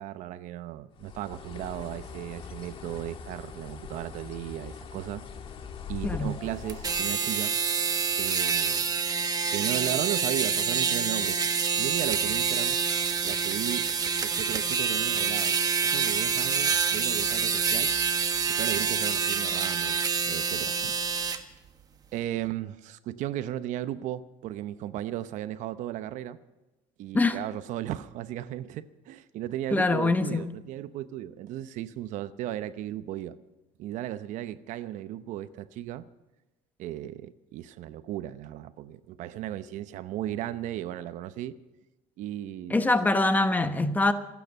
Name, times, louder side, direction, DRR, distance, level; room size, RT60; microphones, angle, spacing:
voice 1, 0.0-5.2 5.9-7.6 8.2-8.9 9.5-11.4 11.8-12.8 13.2-13.9 14.2-17.9 18.5-20.0 20.3-20.9 22.1-26.4 27.0-33.4 33.8-36.1 36.8-41.6 42.2-42.8, right 13 dB, 65° right, 0.8 m, -35 dB
Bird, 1.0-7.2, left 7 dB, 40° left, 1.6 m, -42 dB
voice 2, 6.0-6.3 27.1-27.4 29.7-30.5 42.7-44.1, left 2 dB, 10° left, 1.0 m, -24 dB
sound 1, 6.7-21.4, right 6 dB, 25° right, 1.3 m, -27 dB
27.5 x 9.4 x 5.6 m
cardioid pair, 125°, 14 cm